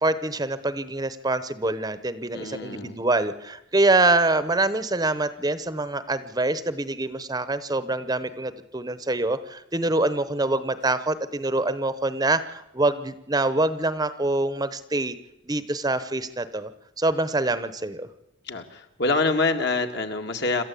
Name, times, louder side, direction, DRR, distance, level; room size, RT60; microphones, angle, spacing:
voice 1, 0.0-15.2 15.5-16.7 17.0-18.1, right 2 dB, 20° right, 13 dB, 0.9 m, -25 dB
voice 2, 2.3-3.0 18.5-20.6, left 3 dB, 55° left, 5 dB, 2.0 m, -26 dB
26.5 x 13.5 x 8.4 m, 0.89 s
head